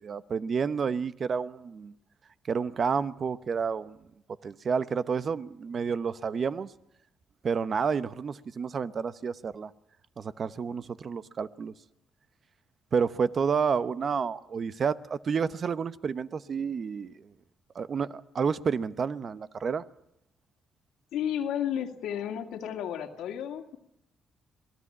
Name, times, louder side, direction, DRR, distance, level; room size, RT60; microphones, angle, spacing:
voice 1, 0.0-1.9 2.5-4.0 4.4-6.7 7.4-9.7 10.2-11.7 12.9-17.1 17.7-19.8, right 6 dB, 50° right, 0.9 m, -30 dB
voice 2, 21.1-23.8, left 9 dB, 85° left, 2.1 m, -32 dB
27.0 x 18.5 x 8.6 m
cardioid pair, 90°, 0 cm